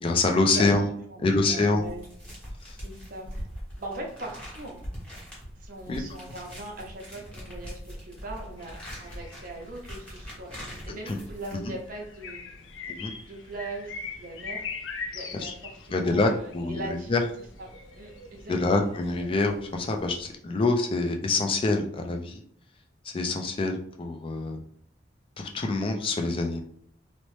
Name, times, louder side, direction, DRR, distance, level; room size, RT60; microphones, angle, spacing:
voice 1, 0.0-0.9 1.2-1.8 2.6-2.8 5.9-6.0 11.1-11.2 11.5-11.6 12.9-13.1 15.3-15.5 15.9-17.2 18.5-22.4 23.0-24.6 25.4-26.6, left 3 dB, 30° left, 3 dB, 0.4 m, -26 dB
voice 2, 0.5-2.5 2.8-3.5 3.8-4.8 5.5-12.7 13.2-17.1 17.6-17.7 17.9-18.9, right 2 dB, 50° right, 1 dB, 0.6 m, -40 dB
sound 1, 1.7-11.9, equal, 5° left, 1.0 m, -42 dB
sound 2, 8.6-20.4, left 4 dB, 90° left, 0.5 m, -42 dB
2.8 x 2.1 x 3.1 m, 0.64 s
head